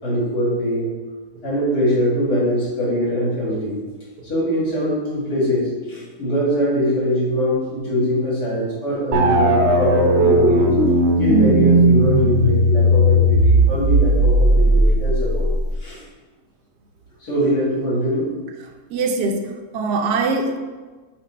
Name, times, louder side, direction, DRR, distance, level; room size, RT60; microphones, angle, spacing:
voice 1, 0.0-0.9 1.4-3.8 4.2-10.7 11.2-15.5 15.8-16.0 17.2-18.3, equal, 70° left, -7 dB, 2.8 m, -22 dB
sound 1, 9.1-15.8, right 1 dB, 50° right, 0.9 m, -16 dB
voice 2, 18.6-20.6, right 3 dB, 80° right, 5 dB, 1.2 m, -23 dB
7.7 x 3.3 x 4.1 m, 1.3 s
omnidirectional pair, 1.7 m